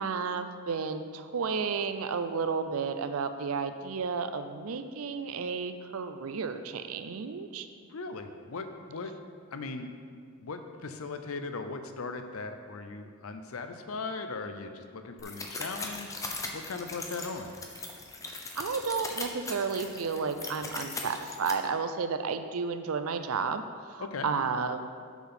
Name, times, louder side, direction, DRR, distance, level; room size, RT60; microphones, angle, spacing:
voice 1, 0.0-7.7 18.6-24.9, right 5 dB, 75° right, 9 dB, 0.5 m, -32 dB
voice 2, 7.8-9.1 9.5-9.9 10.4-16.1 16.5-17.5 24.0-24.3, left 4 dB, 75° left, 7 dB, 0.7 m, -38 dB
sound 1, 15.2-21.5, left 3 dB, 15° left, 0.7 m, -39 dB
7.1 x 5.8 x 5.8 m, 2.1 s
head